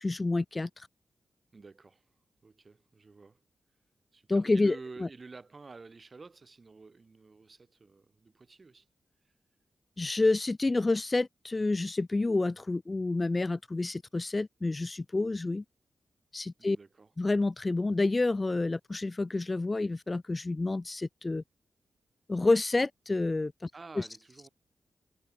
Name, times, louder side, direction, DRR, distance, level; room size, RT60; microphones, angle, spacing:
voice 1, 0.0-0.9 4.3-5.1 10.0-15.6 16.3-16.8 17.2-21.4 22.3-23.7 24.0-24.1, left 2 dB, 30° left, 0.4 m, -29 dB
voice 2, 1.5-2.0 2.4-3.4 4.1-8.8 16.6-17.1 23.7-24.5, right 4 dB, 40° right, 6.2 m, -50 dB
cardioid pair, 75°, 0 cm